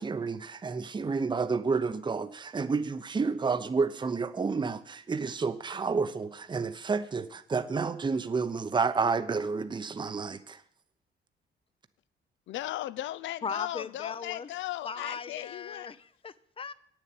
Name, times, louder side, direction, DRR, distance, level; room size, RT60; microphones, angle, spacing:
voice 1, 0.0-10.6, right 4 dB, 25° right, 0.7 m, -30 dB
voice 2, 12.5-15.9, left 14 dB, 75° left, 0.5 m, -37 dB
voice 3, 13.4-14.5 14.8-16.7, left 5 dB, 30° left, 0.6 m, -38 dB
9.0 x 7.4 x 8.6 m
cardioid pair, 90°, 20 cm